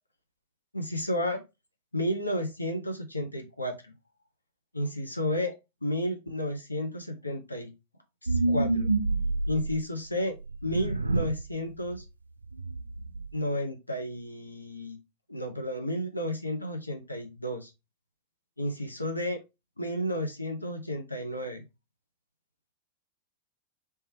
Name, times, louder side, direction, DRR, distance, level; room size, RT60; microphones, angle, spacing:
voice 1, 0.7-1.4 1.9-3.9 4.7-5.5 5.8-7.7 8.2-8.9 9.5-10.4 10.6-12.0 13.3-15.0 15.3-17.7 18.6-19.4 19.8-21.6, left 1 dB, 85° left, 4 dB, 0.8 m, -32 dB
sound 1, 8.3-9.8 10.5-11.5 11.8-12.0 12.4-13.3, right 2 dB, 80° right, 0.3 m, -28 dB
3.3 x 3.3 x 4.3 m, 0.24 s
figure-of-eight pair, 90°, 0 cm